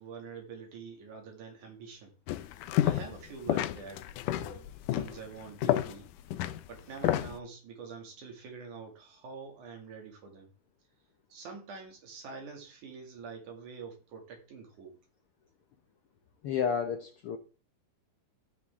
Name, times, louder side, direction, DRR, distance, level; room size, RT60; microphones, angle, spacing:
voice 1, 0.0-2.1 2.8-4.7 4.9-6.1 6.7-10.5 11.3-14.9, right 5 dB, 75° right, 2 dB, 3.8 m, -46 dB
sound 1, 2.3-3.2 3.5-7.4, left 13 dB, 85° left, 2.2 m, -30 dB
voice 2, 16.4-17.4, left 7 dB, 70° left, 6 dB, 1.3 m, -31 dB
13.5 x 7.4 x 3.6 m, 0.36 s
omnidirectional pair, 3.6 m